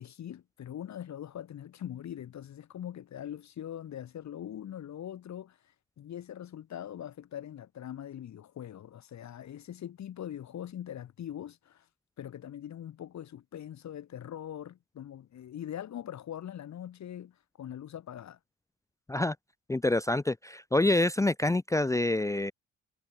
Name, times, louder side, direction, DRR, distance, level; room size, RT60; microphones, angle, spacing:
voice 1, 0.0-11.9 12.2-18.4, left 10 dB, 65° left, 3.5 m, -42 dB
voice 2, 19.7-22.5, left 2 dB, 10° left, 0.6 m, -26 dB
cardioid pair, 90°, 30 cm